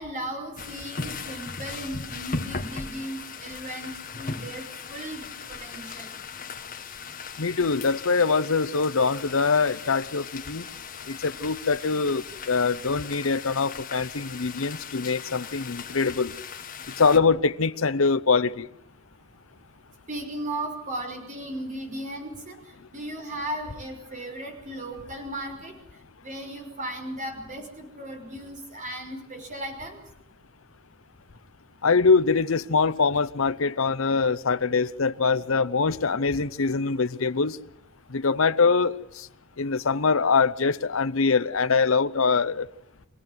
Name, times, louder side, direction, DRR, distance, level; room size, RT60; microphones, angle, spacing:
voice 1, 0.0-6.1 20.1-25.7 26.2-30.0, right 1 dB, 40° right, 5.8 m, -36 dB
sound 1, 0.6-17.2, left 5 dB, 45° left, 1.8 m, -38 dB
voice 2, 7.4-10.7 11.1-16.3 17.0-18.7 31.8-37.6 38.1-39.3 39.6-42.7, left 4 dB, 70° left, 0.8 m, -23 dB
25.0 x 17.5 x 7.9 m
head